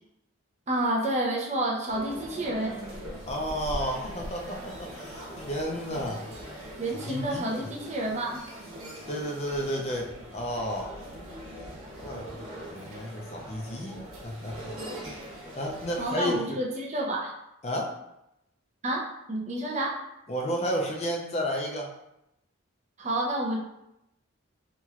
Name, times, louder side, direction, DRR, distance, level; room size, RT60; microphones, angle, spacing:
voice 1, 0.7-2.8 6.8-8.4 16.0-17.3 18.8-19.9 23.0-23.6, right 1 dB, 35° right, -1 dB, 0.6 m, -29 dB
sound 1, 1.9-16.4, equal, 85° right, 1.3 m, -41 dB
voice 2, 3.3-6.3 7.1-7.7 9.1-10.9 12.0-14.7 15.6-16.6 17.6-17.9 20.3-21.9, equal, 30° left, 0 dB, 0.4 m, -32 dB
4.3 x 3.1 x 2.4 m, 0.85 s
head